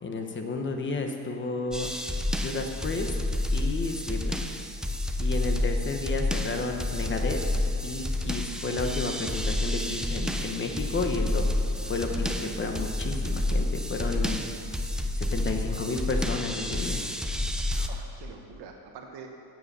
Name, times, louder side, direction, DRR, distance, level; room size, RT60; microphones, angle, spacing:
voice 1, 0.0-1.9 2.4-3.2 3.5-4.4 5.2-7.4 7.8-11.5 11.9-14.4 15.2-17.0, left 3 dB, 30° left, 4 dB, 1.0 m, -32 dB
sound 1, 1.7-17.9, left 1 dB, ahead, 0.4 m, -29 dB
voice 2, 11.8-12.2 15.6-15.9 17.7-19.3, right 6 dB, 75° right, 2 dB, 1.2 m, -46 dB
15.5 x 7.7 x 6.7 m, 2.5 s
cardioid pair, 180°, 41 cm